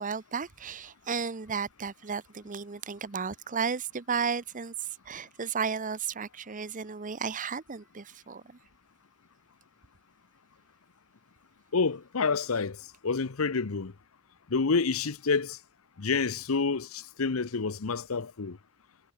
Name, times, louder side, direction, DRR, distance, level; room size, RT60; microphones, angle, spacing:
voice 1, 0.0-8.6, right 6 dB, 40° right, 0.8 m, -34 dB
voice 2, 11.7-13.9 14.5-15.6 16.0-18.6, left 4 dB, 80° left, 0.8 m, -28 dB
head